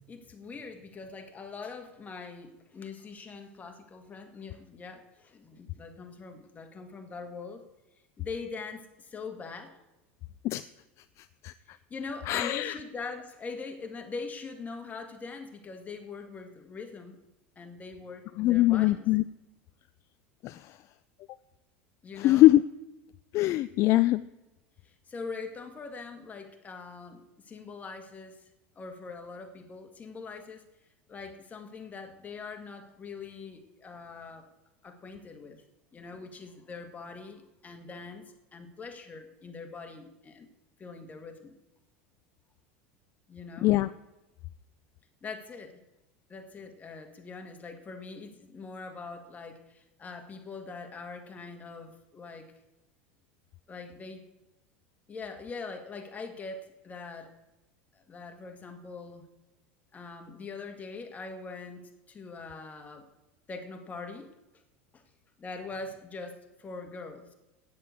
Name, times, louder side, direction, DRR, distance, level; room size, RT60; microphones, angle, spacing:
voice 1, 0.0-7.6 8.2-9.8 11.7-17.2 17.6-19.1 22.0-22.5 24.8-28.4 28.8-30.6 31.1-34.5 34.8-35.6 35.9-40.5 40.8-41.5 43.3-43.7 45.2-45.8 46.3-52.5 53.7-54.2 55.1-57.3 58.1-59.3 59.9-63.1 63.5-64.3 64.9-65.0 65.4-67.3, left 4 dB, 25° left, 5 dB, 1.7 m, -42 dB
voice 2, 11.2-11.8 12.3-12.8 18.4-19.2 20.4-20.8 22.2-22.6 23.3-24.2 43.6-43.9, left 16 dB, 50° left, 14 dB, 0.4 m, -23 dB
8.6 x 7.6 x 8.2 m, 0.99 s
hypercardioid pair, 100°, 6 cm